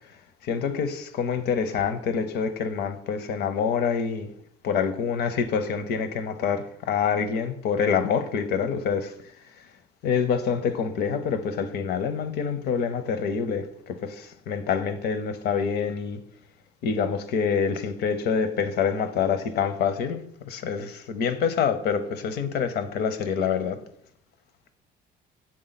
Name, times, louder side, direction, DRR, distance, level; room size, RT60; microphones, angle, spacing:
voice 1, 0.4-4.3 4.6-9.1 10.0-16.2 16.8-20.2 20.5-23.8, left 6 dB, 75° left, 0.7 m, -26 dB
7.7 x 3.6 x 4.1 m
cardioid pair, 110°, 17 cm